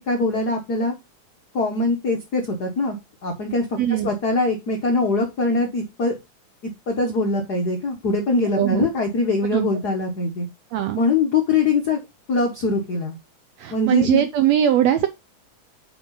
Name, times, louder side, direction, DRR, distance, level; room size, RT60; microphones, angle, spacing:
voice 1, 0.1-0.9 1.5-3.0 3.2-6.1 6.9-10.5 10.9-12.0 12.3-13.1 13.7-14.2, left 3 dB, 80° left, 0.8 m, -22 dB
voice 2, 3.8-4.1 8.5-8.9 9.5-9.7 10.7-11.0 13.6-15.1, right 11 dB, 80° right, 1.5 m, -20 dB
7.9 x 5.0 x 3.8 m
omnidirectional pair, 3.6 m